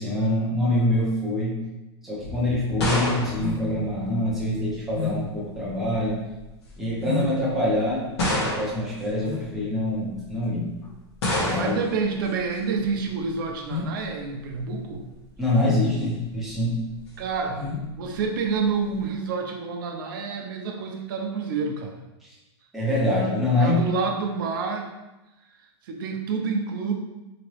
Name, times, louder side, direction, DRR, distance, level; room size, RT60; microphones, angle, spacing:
voice 1, 0.0-1.6 2.0-6.2 6.8-10.7 11.4-11.8 15.4-16.8 22.2-22.3 22.7-23.8, left 1 dB, ahead, -7 dB, 0.6 m, -25 dB
sound 1, 2.2-4.5 5.6-6.0 6.9-7.0 8.2-9.0 11.2-11.9, left 1 dB, 70° left, 1.2 m, -28 dB
sound 2, 2.8-19.1, left 4 dB, 35° left, 0.9 m, -36 dB
voice 2, 11.5-15.0 17.2-17.7 17.9-22.0 23.6-24.9 25.8-26.9, right 5 dB, 50° right, 3 dB, 0.5 m, -28 dB
2.9 x 2.8 x 3.0 m, 1.0 s
supercardioid pair, 170°, 14 cm